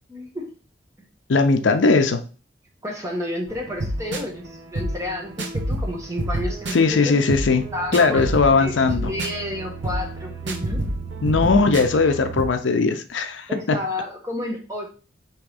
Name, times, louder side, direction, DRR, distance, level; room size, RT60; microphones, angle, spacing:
voice 1, 0.1-0.5 2.8-7.3 7.7-8.3 8.6-10.8 13.5-14.9, left 1 dB, 15° right, 0 dB, 1.1 m, -31 dB
voice 2, 1.3-2.2 6.7-7.7 7.9-9.1 11.2-13.8, left 4 dB, 85° left, 8 dB, 0.6 m, -19 dB
sound 1, 3.5-12.5, right 1 dB, 70° right, 0.8 m, -29 dB
3.5 x 3.1 x 4.9 m, 0.36 s
head